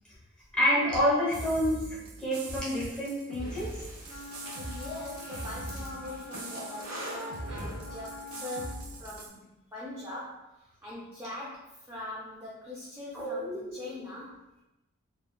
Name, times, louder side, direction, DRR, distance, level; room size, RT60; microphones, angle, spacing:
voice 1, 0.5-1.8 2.2-3.7 13.1-13.8, equal, 5° left, -9 dB, 0.9 m, -28 dB
sound 1, 1.3-9.3, right 2 dB, 80° right, 0.4 m, -42 dB
Breathing, 3.4-8.3, equal, 60° right, 1.1 m, -44 dB
Wind instrument woodwind instrument, 4.0-8.8, left 2 dB, 65° left, 0.4 m, -45 dB
voice 2, 4.6-14.4, left 2 dB, 10° right, -8 dB, 0.4 m, -42 dB
3.0 x 2.3 x 2.3 m, 0.95 s
head